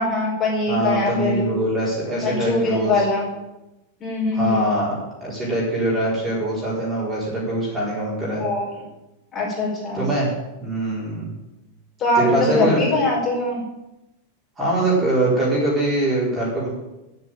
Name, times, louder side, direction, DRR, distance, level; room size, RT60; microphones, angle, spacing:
voice 1, 0.0-1.6 2.2-3.3 4.0-4.7 8.4-8.6 9.3-10.1 12.0-13.6, left 2 dB, 20° left, -4 dB, 4.7 m, -22 dB
voice 2, 0.7-3.0 4.3-8.4 9.9-10.3 10.6-11.3 12.1-13.0 14.6-16.7, right 1 dB, 15° right, -6 dB, 4.4 m, -23 dB
9.8 x 8.2 x 9.1 m, 0.97 s
supercardioid pair, 170°, 0 cm